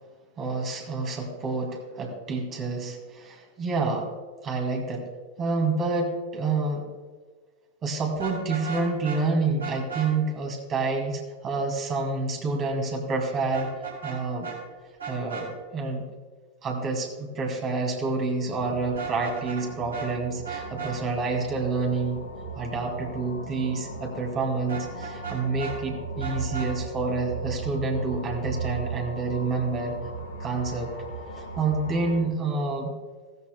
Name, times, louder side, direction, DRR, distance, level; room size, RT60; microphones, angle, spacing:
voice 1, 0.4-4.1 4.4-5.0 5.4-6.9 7.8-13.7 14.0-14.5 15.1-16.0 16.6-22.2 22.6-30.0 30.4-30.9 31.3-32.9, right 3 dB, 30° right, 2 dB, 2.3 m, -28 dB
Vehicle horn car horn honking, 8.1-9.2 9.6-10.1 13.5-14.2 14.4-14.6 15.0-15.5 18.9-19.7 19.9-20.1 20.4-20.9 24.7-25.8 26.2-26.7, right 6 dB, 70° right, 4.0 m, -35 dB
sound 1, 18.4-32.2, right 3 dB, 65° left, 2.5 m, -37 dB
16.5 x 13.5 x 2.2 m, 1.4 s
figure-of-eight pair, 90°, 0 cm